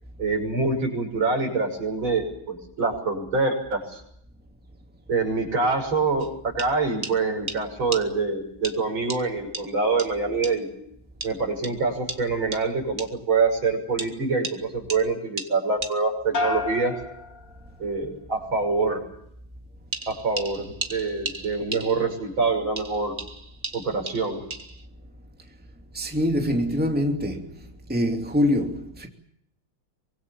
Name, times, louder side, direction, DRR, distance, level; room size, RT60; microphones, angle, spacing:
voice 1, 0.2-4.0 5.1-10.7 11.2-17.0 17.8-19.0 20.1-23.2 23.7-24.4, right 4 dB, 75° right, 7.2 m, -25 dB
sound 1, 6.2-6.3 6.6-6.7 7.0-7.2 7.5-7.6 7.9-8.0 8.6-8.8 9.1-9.2 9.5-9.7 10.0-10.1 10.4-10.5 11.2-11.3 11.6-11.7 12.1-12.2 12.5-12.6 13.0-13.1 14.0-14.1 14.4-14.6 14.9-15.0 15.4-15.5 15.8-15.9 19.9-22.3 22.8-24.9, right 3 dB, 25° right, 2.0 m, -35 dB
sound 2, 16.3-18.1 18.5-19.1, left 3 dB, 40° left, 3.2 m, -32 dB
voice 2, 25.9-27.5 27.9-29.1, left 1 dB, 5° right, 2.7 m, -24 dB
25.0 x 23.5 x 7.2 m
omnidirectional pair, 2.2 m